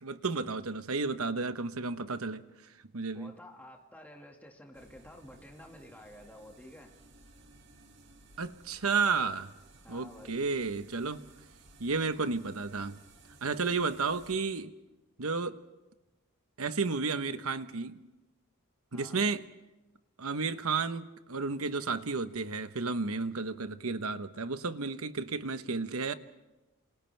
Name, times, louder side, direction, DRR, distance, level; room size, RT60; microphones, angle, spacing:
voice 1, 0.0-2.5 2.9-3.3 8.4-9.5 9.9-11.2 11.8-13.0 13.4-14.7 15.2-15.6 16.6-18.0 18.9-19.4 20.2-26.1, right 4 dB, 75° right, 1.1 m, -32 dB
voice 2, 3.1-6.9 9.8-10.5 18.9-19.2, left 1 dB, 5° left, 2.0 m, -51 dB
sound 1, 4.7-14.4, right 2 dB, 55° right, 2.3 m, -58 dB
29.5 x 27.5 x 3.4 m
head